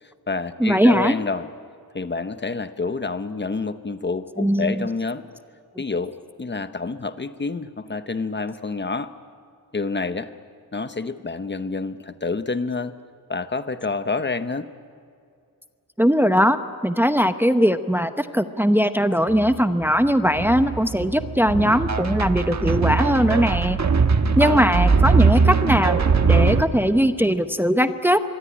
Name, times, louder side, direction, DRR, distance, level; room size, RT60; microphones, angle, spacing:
voice 1, 0.0-1.5 1.9-5.2 5.8-9.1 9.7-10.3 10.7-12.9 13.3-14.7, left 4 dB, 30° left, 11 dB, 0.9 m, -28 dB
voice 2, 0.6-1.2 4.4-4.8 16.0-16.6 16.8-23.8 24.4-26.0 26.3-28.2, equal, 5° right, 9 dB, 0.8 m, -19 dB
sound 1, 19.3-19.6 19.8-26.6, right 5 dB, 50° right, 1.2 m, -20 dB
24.5 x 23.5 x 9.8 m, 2.3 s
wide cardioid pair, 145°, 36 cm